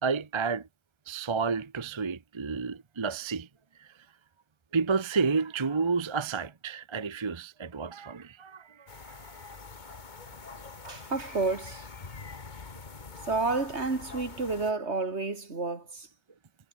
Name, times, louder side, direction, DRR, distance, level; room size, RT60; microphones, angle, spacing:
voice 1, 0.0-0.7 1.1-3.5 3.8-3.9 4.7-9.3, right 5 dB, 30° right, 0.7 m, -31 dB
sound 1, 8.9-14.7, left 4 dB, 40° left, 1.5 m, -45 dB
voice 2, 10.8-11.9 13.2-16.1, right 3 dB, 60° right, 2.9 m, -30 dB
omnidirectional pair, 1.3 m